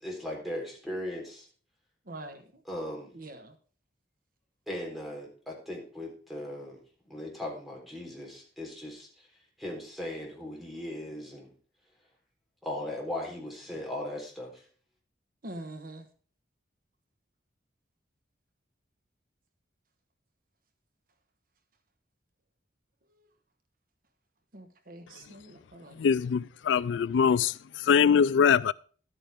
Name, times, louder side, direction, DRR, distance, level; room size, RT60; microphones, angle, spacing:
voice 1, 0.0-1.4 2.6-3.1 4.7-6.8 7.1-9.1 9.6-11.5 12.6-14.5, left 1 dB, ahead, 3.9 m, -38 dB
voice 2, 2.1-2.4 3.1-3.5 15.4-16.0 24.5-26.0, right 1 dB, 55° right, 1.2 m, -44 dB
voice 3, 26.0-28.7, left 7 dB, 85° left, 0.4 m, -23 dB
12.0 x 8.9 x 3.6 m
head